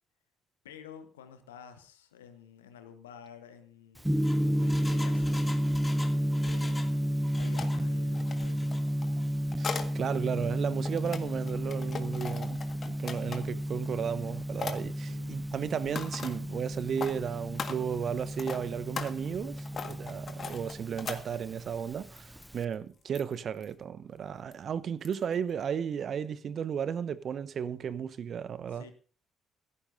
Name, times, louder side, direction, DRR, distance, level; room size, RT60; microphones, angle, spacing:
voice 1, 0.6-4.1 4.4-5.5 6.4-6.9 7.4-8.8 15.1-15.4 28.7-28.9, left 8 dB, 80° left, 1.2 m, -50 dB
Engine, 4.0-7.0 7.2-7.8 8.3-8.8 9.2-9.3, left 2 dB, 20° left, 2.4 m, -45 dB
Gong, 4.0-22.6, equal, 5° right, 0.8 m, -32 dB
sound 1, 7.6-7.7 8.1-9.9 10.6-13.6 14.1-14.3 14.6-14.8 15.7-16.4 16.9-17.1 17.5-21.6 22.2-22.5 22.7-22.8 23.1-23.4 23.6-23.7 24.5-24.6 25.0-25.3 25.6-25.7, left 6 dB, 45° left, 1.6 m, -39 dB
voice 2, 9.6-28.8, right 8 dB, 50° right, 0.8 m, -34 dB
16.0 x 14.0 x 2.6 m
figure-of-eight pair, 45°, 0 cm